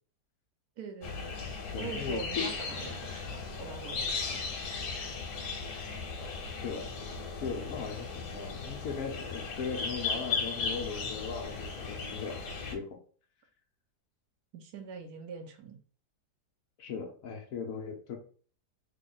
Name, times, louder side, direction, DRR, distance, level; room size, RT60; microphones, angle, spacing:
voice 1, 0.8-1.3 1.8-4.6 14.5-15.8, right 6 dB, 70° right, 4 dB, 1.1 m, -43 dB
sound 1, 1.0-12.8, left 4 dB, 90° left, 1.4 m, -37 dB
voice 2, 1.7-2.5 6.5-6.9 7.4-12.4 12.7-12.9 16.8-18.2, left 5 dB, 65° left, 2 dB, 1.0 m, -38 dB
3.4 x 2.2 x 3.7 m, 0.43 s
omnidirectional pair, 1.7 m